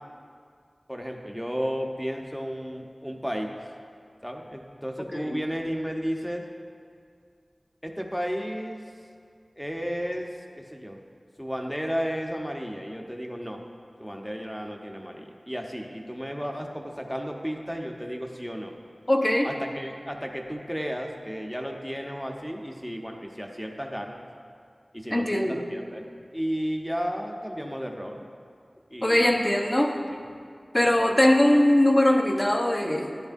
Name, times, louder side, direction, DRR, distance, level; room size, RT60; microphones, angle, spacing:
voice 1, 0.9-3.5 4.2-6.4 7.8-8.8 9.6-11.0 11.4-13.6 14.0-18.7 19.4-24.2 24.9-26.1 26.3-28.3 28.9-29.4 30.1-30.2 30.8-30.9, equal, 5° left, 2 dB, 0.9 m, -33 dB
voice 2, 19.1-19.5 25.1-25.6 29.0-30.0 30.7-33.2, left 1 dB, 30° left, 2 dB, 0.9 m, -21 dB
12.5 x 9.9 x 2.6 m, 2.2 s
wide cardioid pair, 55°, 0 cm